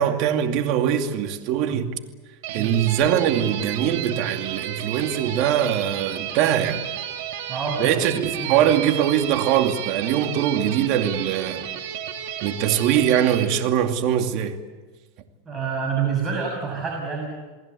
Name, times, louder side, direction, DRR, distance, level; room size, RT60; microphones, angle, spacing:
voice 1, 0.0-2.0 2.5-6.8 7.8-11.7 12.4-14.6, right 10 dB, 55° right, 2.4 m, -22 dB
sound 1, 2.4-13.4, right 10 dB, 70° right, 3.4 m, -32 dB
voice 2, 7.5-8.7 15.4-17.3, right 5 dB, 25° right, 6.7 m, -28 dB
28.5 x 20.0 x 8.4 m
supercardioid pair, 125°, 0 cm